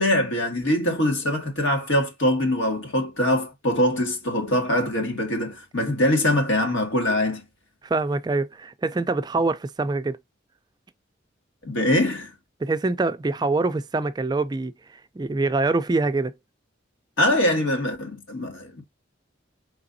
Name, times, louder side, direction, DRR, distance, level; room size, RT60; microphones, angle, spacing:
voice 1, 0.0-7.4 11.6-12.3 17.2-18.8, left 1 dB, 80° left, 1.8 m, -23 dB
voice 2, 7.8-10.2 12.6-16.3, right 3 dB, 20° right, 0.3 m, -25 dB
5.0 x 3.3 x 2.6 m
head